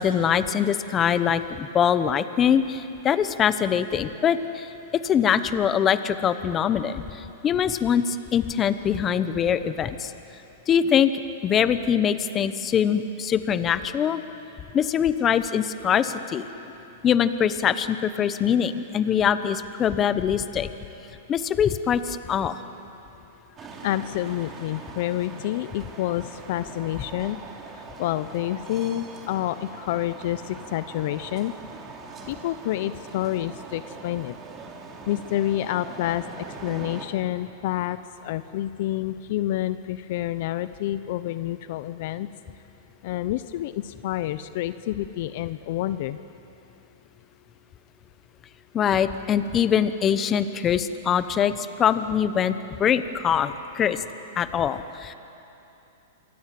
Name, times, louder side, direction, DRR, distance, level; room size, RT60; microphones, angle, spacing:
voice 1, 0.0-4.7 5.0-10.1 10.7-11.1 11.4-14.2 14.7-16.5 17.0-20.7 21.3-22.6 48.7-54.0 54.4-55.1, left 8 dB, 20° left, 12 dB, 1.0 m, -23 dB
sound 1, 23.6-37.1, right 4 dB, 20° right, 3.0 m, -42 dB
voice 2, 23.8-27.4 27.7-31.5 32.3-34.4 35.1-42.3 43.0-46.2, left 14 dB, 55° left, 13 dB, 0.7 m, -28 dB
26.5 x 23.5 x 7.7 m, 2.9 s
hypercardioid pair, 145°, 0 cm